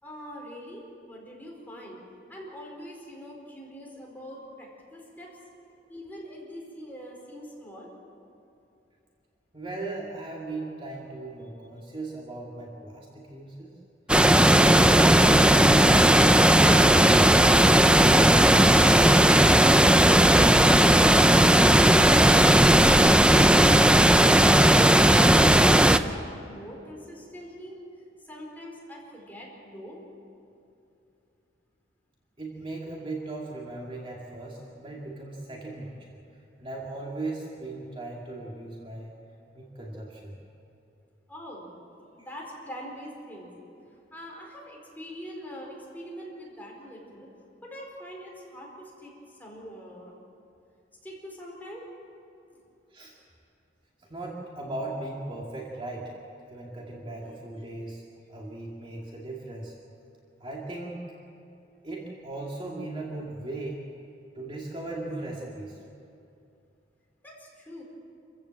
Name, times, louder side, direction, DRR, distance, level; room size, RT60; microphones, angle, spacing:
voice 1, 0.0-2.0 2.3-5.3 5.9-7.9 24.4-27.8 28.2-30.0 41.3-41.8 42.1-43.5 44.1-47.3 47.6-50.1 51.0-51.9 52.5-52.6 67.2-67.8, equal, 10° left, -2 dB, 4.6 m, -43 dB
voice 2, 9.5-13.8 14.5-18.3 32.4-36.2 36.6-39.1 39.5-40.4 52.9-53.1 54.1-56.1 56.5-58.0 58.3-59.7 60.4-61.1 61.8-63.8 64.3-65.8, right 2 dB, 30° right, -2 dB, 2.3 m, -37 dB
sound 1, 14.1-26.0, right 1 dB, 5° right, 0.5 m, -17 dB
27.5 x 15.5 x 7.6 m, 2.6 s
head